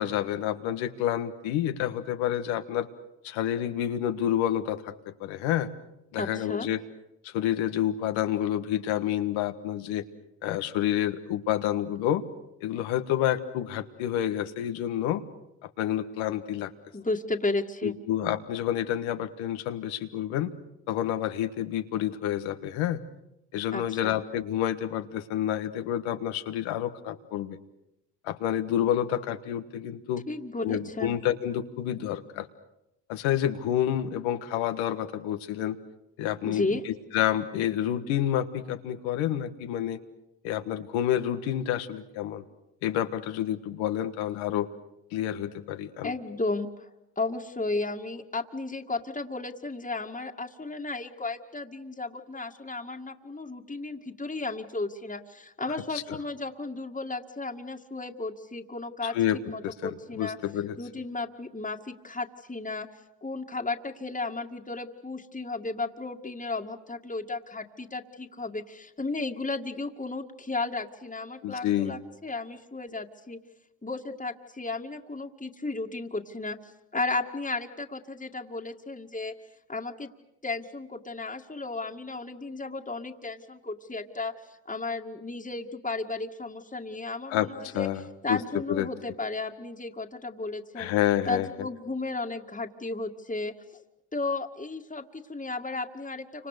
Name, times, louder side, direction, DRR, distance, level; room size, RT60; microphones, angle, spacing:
voice 1, 0.0-2.9 3.2-4.9 5.2-5.7 6.1-6.8 7.2-10.0 10.4-12.2 12.6-15.2 15.6-16.7 17.8-20.5 20.9-23.0 23.5-27.6 28.2-30.2 30.6-32.5 33.1-35.8 36.2-40.0 40.4-42.4 42.8-44.7 45.1-46.1 55.9-56.2 59.0-59.4 59.6-60.7 71.4-71.9 87.3-88.0 88.3-88.4 88.7-88.9 90.8-91.7, left 11 dB, 85° left, 9 dB, 1.6 m, -29 dB
voice 2, 6.2-6.7 16.9-17.9 23.7-24.0 30.3-31.2 36.4-36.8 46.0-46.9 47.2-60.4 60.8-62.9 63.2-73.4 73.8-76.6 76.9-79.3 79.7-80.1 80.4-87.9 88.2-90.9 91.3-93.8 94.1-96.5, left 3 dB, 15° left, 2 dB, 2.1 m, -34 dB
30.0 x 26.0 x 6.7 m, 0.88 s
hypercardioid pair, 45°, 46 cm